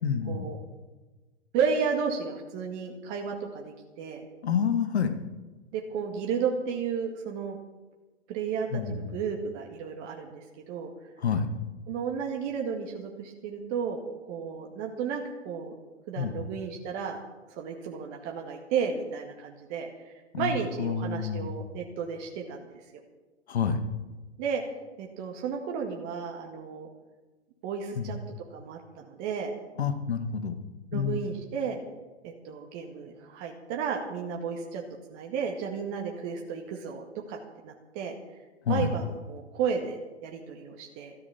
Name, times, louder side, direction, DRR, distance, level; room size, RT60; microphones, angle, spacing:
voice 1, 0.0-0.5 4.4-5.1 8.7-9.1 11.2-11.5 16.2-16.5 20.3-21.5 23.5-23.8 28.0-28.2 29.8-30.6 30.9-31.2 38.7-38.9, left 6 dB, 65° left, 9 dB, 1.9 m, -28 dB
voice 2, 1.5-4.3 5.7-7.6 8.3-10.9 11.9-14.0 14.3-15.7 16.1-17.2 17.5-22.8 24.4-24.6 25.0-26.9 27.6-28.2 28.5-29.5 30.9-31.8 32.2-34.8 35.1-38.1 38.7-41.2, right 6 dB, 35° right, 1 dB, 1.9 m, -33 dB
13.5 x 12.0 x 7.1 m, 1.2 s
hypercardioid pair, 120°, 35 cm